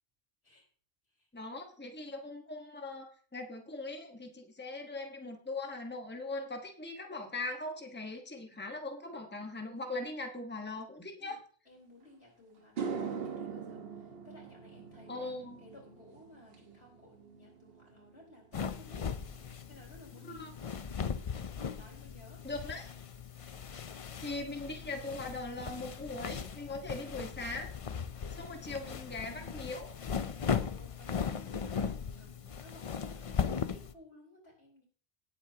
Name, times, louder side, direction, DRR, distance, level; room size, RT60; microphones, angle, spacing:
voice 1, 1.3-11.4 15.1-15.6 20.3-20.5 22.4-22.9 24.2-27.7 28.3-30.0, left 2 dB, 10° left, 4 dB, 1.3 m, -40 dB
voice 2, 11.6-15.3 15.6-20.5 21.6-22.7 23.4-23.6 30.2-34.8, left 1 dB, 85° left, -1 dB, 4.9 m, -57 dB
sound 1, 12.0-12.1 12.6-21.1 21.4-21.8 25.4-25.5 27.1-27.2 27.5-27.7 27.9-28.5, right 6 dB, 70° right, 1.4 m, -44 dB
sound 2, 18.5-33.9, left 6 dB, 40° left, 0.5 m, -38 dB
18.0 x 8.6 x 2.8 m, 0.42 s
omnidirectional pair, 1.0 m